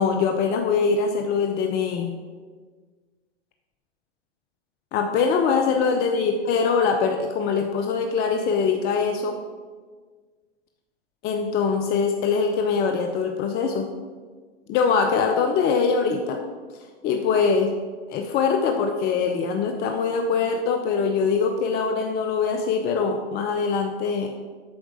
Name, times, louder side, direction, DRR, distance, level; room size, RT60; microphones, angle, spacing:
voice 1, 0.0-2.1 4.9-9.4 11.2-13.9 14.7-16.4 17.0-17.7 18.1-24.3, left 5 dB, 30° left, 5 dB, 0.6 m, -23 dB
7.9 x 4.5 x 6.5 m, 1.5 s
hypercardioid pair, 115°, 35 cm